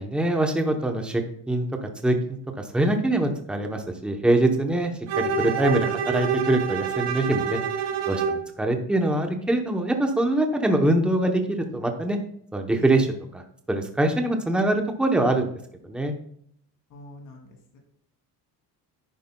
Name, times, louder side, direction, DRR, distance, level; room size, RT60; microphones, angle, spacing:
voice 1, 0.0-7.6 8.1-12.2 12.5-13.1 13.3-13.4 13.7-15.5 15.8-16.1, right 1 dB, ahead, 4 dB, 0.8 m, -24 dB
Bowed string instrument, 5.1-8.5, right 6 dB, 85° right, 1.9 m, -27 dB
voice 2, 5.3-5.7 12.8-13.0 16.9-17.8, equal, 50° left, 0 dB, 2.7 m, -42 dB
10.5 x 9.1 x 2.2 m, 0.66 s
cardioid pair, 175°, 40 cm